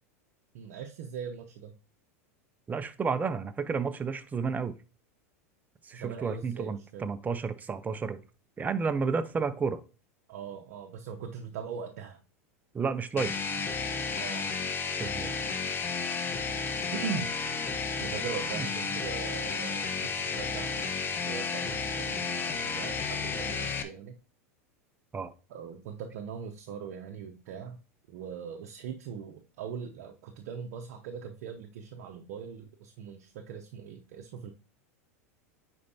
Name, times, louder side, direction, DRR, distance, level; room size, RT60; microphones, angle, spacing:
voice 1, 0.5-1.8 5.9-7.1 10.3-12.2 14.2-14.5 16.9-17.3 18.0-24.2 25.5-27.8 28.1-34.5, right 7 dB, 65° right, 3 dB, 0.8 m, -41 dB
voice 2, 2.7-4.7 5.9-8.2 8.6-9.8 12.7-13.3 15.0-15.3 18.5-18.6 25.1-25.3, right 5 dB, 20° right, 11 dB, 0.7 m, -31 dB
sound 1, 13.2-23.8, left 5 dB, 25° left, 0.9 m, -32 dB
9.6 x 4.5 x 2.8 m, 0.35 s
hypercardioid pair, 100°, 8 cm